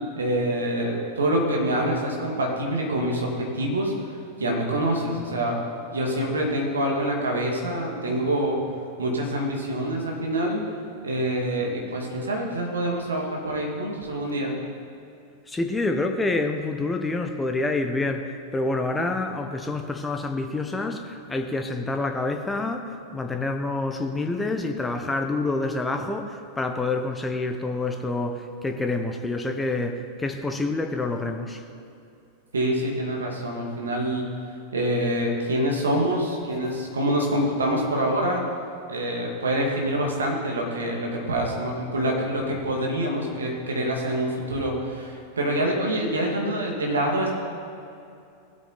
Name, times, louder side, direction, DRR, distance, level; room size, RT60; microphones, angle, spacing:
voice 1, 0.2-3.9 4.4-5.6 5.9-8.6 9.0-10.7 11.0-14.6 32.5-34.3 34.7-38.4 38.9-47.3, right 1 dB, 70° right, -1 dB, 2.3 m, -26 dB
voice 2, 15.5-31.6, left 2 dB, 10° left, 5 dB, 0.9 m, -27 dB
18.5 x 8.2 x 4.2 m, 2.5 s
figure-of-eight pair, 90°, 0 cm